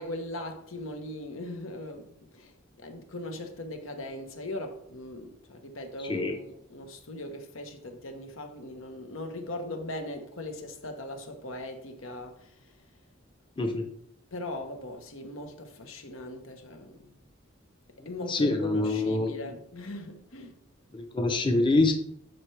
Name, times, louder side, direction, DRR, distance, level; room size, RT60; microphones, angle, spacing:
voice 1, 0.0-12.8 14.3-17.1 18.0-20.5, left 1 dB, 80° left, 1.3 m, -39 dB
voice 2, 13.6-13.9 18.3-19.3 20.9-21.9, left 2 dB, 25° left, 0.8 m, -25 dB
12.5 x 4.5 x 3.4 m
head